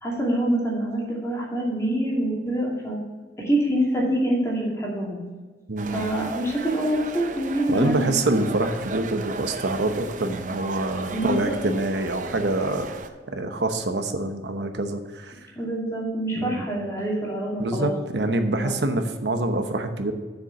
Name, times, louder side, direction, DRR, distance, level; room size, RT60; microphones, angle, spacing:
voice 1, 0.0-3.0 3.4-5.2 5.9-8.1 11.1-11.6 15.6-18.0 18.5-18.7, right 1 dB, 15° left, -4 dB, 2.5 m, -25 dB
voice 2, 5.7-6.1 7.7-12.9 13.3-15.4 16.4-16.7 17.6-20.1, right 2 dB, 80° right, 7 dB, 0.9 m, -26 dB
sound 1, 5.8-13.1, right 3 dB, 45° right, 0.6 m, -36 dB
7.2 x 6.5 x 7.0 m, 1.4 s
head